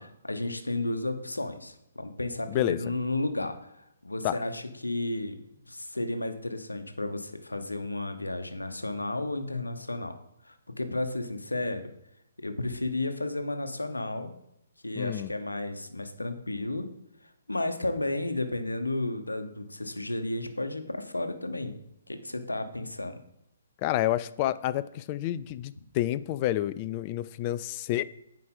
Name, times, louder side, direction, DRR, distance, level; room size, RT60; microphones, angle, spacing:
voice 1, 0.0-5.4 5.7-10.2 10.4-11.9 12.4-14.3 14.8-16.9 17.5-21.8 22.1-23.2, left 2 dB, 90° left, 8 dB, 1.0 m, -33 dB
voice 2, 15.0-15.3 23.8-28.0, left 14 dB, 30° left, 15 dB, 0.3 m, -29 dB
9.4 x 4.7 x 3.8 m, 0.80 s
figure-of-eight pair, 130°, 0 cm